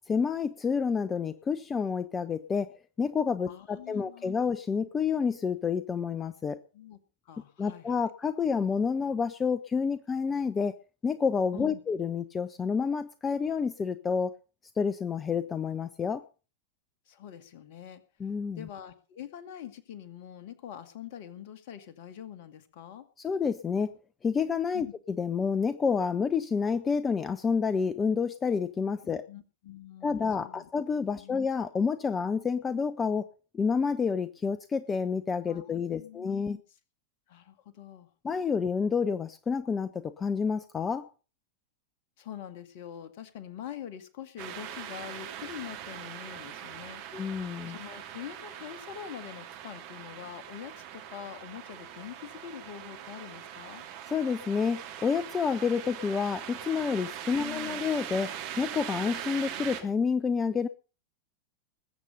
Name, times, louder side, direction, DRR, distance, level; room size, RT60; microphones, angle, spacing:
voice 1, 0.1-2.7 3.0-6.6 7.6-10.7 11.0-14.3 14.8-16.2 18.2-18.7 23.2-23.9 24.2-29.3 30.0-33.3 33.5-36.6 38.2-41.1 47.1-47.8 54.1-60.7, left 5 dB, 20° left, 14 dB, 0.8 m, -29 dB
voice 2, 3.5-4.3 6.7-7.0 7.3-8.0 11.5-11.8 17.1-18.0 18.6-23.0 24.7-24.9 29.3-30.7 31.1-31.4 35.5-36.6 37.3-38.1 42.2-53.8 57.3-57.8, left 10 dB, 50° left, 12 dB, 2.0 m, -44 dB
sound 1, 44.4-59.8, right 10 dB, 45° right, 2.8 m, -41 dB
20.5 x 8.3 x 5.4 m, 0.35 s
figure-of-eight pair, 90°, 0 cm